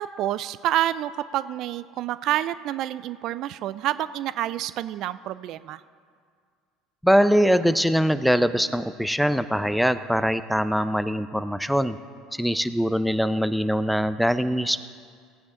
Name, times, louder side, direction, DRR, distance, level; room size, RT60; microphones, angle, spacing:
voice 1, 0.0-5.8, right 13 dB, 60° right, 16 dB, 0.3 m, -28 dB
voice 2, 7.0-12.0 12.3-14.8, equal, ahead, 12 dB, 0.6 m, -22 dB
17.5 x 9.6 x 3.8 m, 2.1 s
hypercardioid pair, 75°, 0 cm